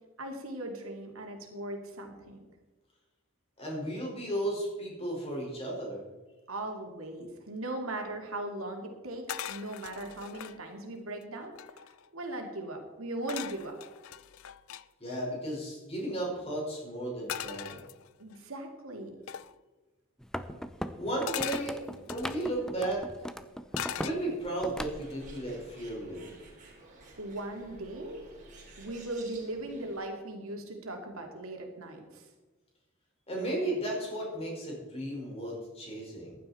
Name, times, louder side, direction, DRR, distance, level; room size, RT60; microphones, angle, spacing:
voice 1, 0.2-2.4 6.5-11.5 12.1-13.8 18.2-19.2 27.2-28.3 28.8-32.3, right 1 dB, 85° right, 3 dB, 2.5 m, -39 dB
voice 2, 3.6-6.0 15.0-17.8 21.0-23.0 24.0-26.4 33.3-36.4, right 1 dB, 30° left, -2 dB, 5.3 m, -34 dB
sound 1, 9.3-10.6 11.2-11.3 11.5-12.1 13.3-14.8 17.3-18.4 19.3-19.5 21.3-22.5 23.7-24.6 25.0-25.4, left 10 dB, 75° left, 0.5 m, -40 dB
sound 2, 20.2-24.2 24.5-25.4, equal, 5° left, 0.6 m, -39 dB
Bird, 24.9-30.0, right 2 dB, 40° right, 3.5 m, -52 dB
15.0 x 11.0 x 4.4 m, 1.2 s
head